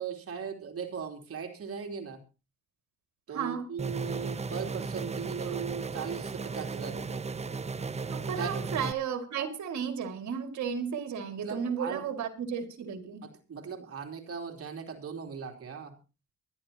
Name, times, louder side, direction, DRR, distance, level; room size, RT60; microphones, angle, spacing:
voice 1, 0.0-2.2 3.3-7.3 8.3-8.5 11.4-12.0 13.2-15.9, right 6 dB, 50° right, 3.3 m, -38 dB
sound 1, 3.8-8.9, right 4 dB, 20° right, 0.8 m, -35 dB
voice 2, 8.1-13.2, right 7 dB, 70° right, 2.3 m, -34 dB
24.0 x 11.5 x 2.9 m
cardioid pair, 90°, 30 cm